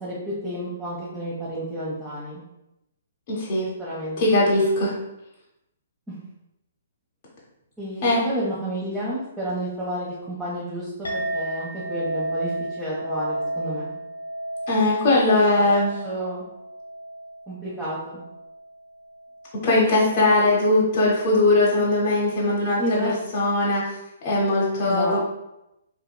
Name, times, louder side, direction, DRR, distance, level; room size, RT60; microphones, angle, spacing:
voice 1, 0.0-2.4 3.8-4.5 6.1-6.2 7.8-14.0 15.3-15.7 16.0-16.5 17.5-18.2 22.8-23.1 24.8-25.2, equal, 10° right, -9 dB, 0.7 m, -31 dB
voice 2, 3.3-3.7 4.2-4.9 8.0-8.2 14.7-15.9 19.6-23.8 24.2-25.2, left 2 dB, 45° left, -6 dB, 0.8 m, -20 dB
Chink clink, 11.0-19.8, right 1 dB, 90° left, 0.9 m, -33 dB
2.8 x 2.8 x 2.2 m, 0.88 s
hypercardioid pair, 130°, 0 cm